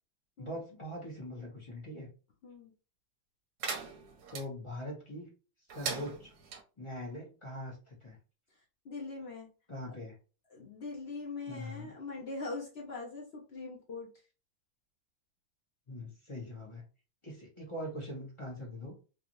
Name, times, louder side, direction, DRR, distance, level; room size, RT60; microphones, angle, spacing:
voice 1, 0.4-2.1 4.3-5.3 5.7-6.3 6.8-8.2 9.7-10.2 11.5-11.9 15.9-16.8 17.2-18.9, left 1 dB, 20° left, -3 dB, 0.8 m, -42 dB
sound 1, 3.6-4.5 5.7-6.6, right 6 dB, 65° right, 1.1 m, -39 dB
voice 2, 8.8-9.5 10.5-14.1, left 3 dB, 90° left, -2 dB, 0.5 m, -42 dB
3.2 x 2.7 x 3.0 m, 0.34 s
omnidirectional pair, 2.1 m